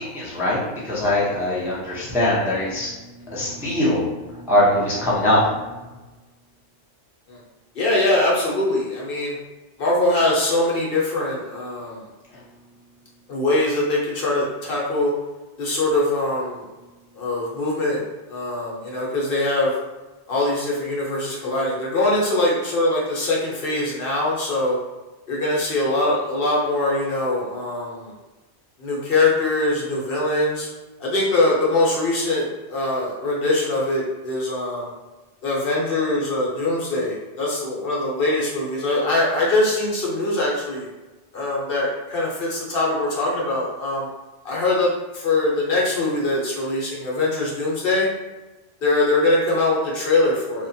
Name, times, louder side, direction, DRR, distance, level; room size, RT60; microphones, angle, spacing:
voice 1, 0.0-2.9 3.3-5.7, left 1 dB, 5° right, -7 dB, 0.4 m, -22 dB
voice 2, 7.8-9.4 9.8-12.0 13.3-15.1 15.6-16.7 17.2-18.0 18.3-19.7 20.3-24.8 25.3-28.1 28.8-30.7 31.0-34.9 35.4-40.9 41.3-44.1 44.4-48.1 48.8-50.7, left 2 dB, 60° left, -4 dB, 0.8 m, -22 dB
2.8 x 2.1 x 2.6 m, 1.2 s
omnidirectional pair, 1.2 m